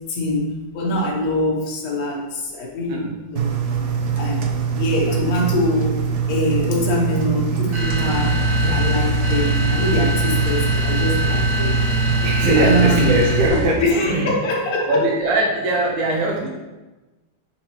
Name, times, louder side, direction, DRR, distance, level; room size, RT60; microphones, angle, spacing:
voice 1, 0.1-3.5 3.8-3.9 4.2-5.9 6.3-11.8 12.6-13.1 13.8-15.0, left 1 dB, 55° left, -2 dB, 1.5 m, -23 dB
Engine, 3.4-13.5, right 6 dB, 65° right, 1.2 m, -23 dB
sound 1, 7.7-13.9, left 2 dB, 45° right, 1.0 m, -23 dB
voice 2, 12.2-14.3 14.9-16.5, right 1 dB, 80° right, -3 dB, 1.6 m, -20 dB
7.0 x 4.6 x 3.1 m, 1.1 s
omnidirectional pair, 2.0 m